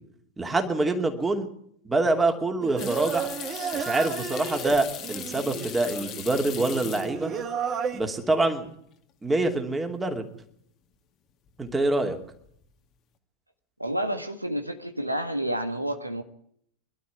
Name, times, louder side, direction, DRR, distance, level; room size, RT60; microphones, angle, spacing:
voice 1, 0.4-1.5 1.8-3.3 3.7-7.3 7.9-8.7 9.2-10.2 11.6-12.2, right 2 dB, 10° right, 4 dB, 2.7 m, -25 dB
Singing, 2.6-8.0, right 7 dB, 25° right, 1.9 m, -33 dB
sound 1, 2.8-7.4 7.7-8.3 8.7-8.8 11.5-11.9 12.2-12.7, left 11 dB, 35° left, 1.9 m, -39 dB
voice 2, 13.8-16.2, right 1 dB, 85° right, 8 dB, 1.6 m, -29 dB
23.5 x 12.0 x 9.5 m, 0.69 s
figure-of-eight pair, 90°, 0 cm